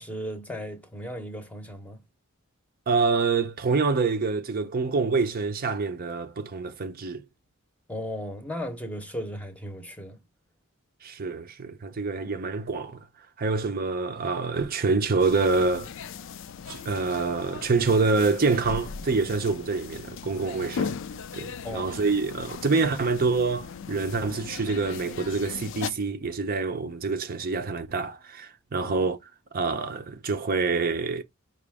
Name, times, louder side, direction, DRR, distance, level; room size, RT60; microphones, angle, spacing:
voice 1, 0.0-2.0 7.9-10.2 21.6-21.9 28.8-28.9, equal, 5° left, 0.8 m, -36 dB
voice 2, 2.9-7.2 11.0-13.1 13.4-15.9 16.7-21.0 21.3-29.2 29.5-31.2, right 4 dB, 45° right, 0.5 m, -26 dB
sound 1, 15.2-25.9, left 6 dB, 65° left, 0.4 m, -38 dB
4.9 x 2.4 x 3.4 m
head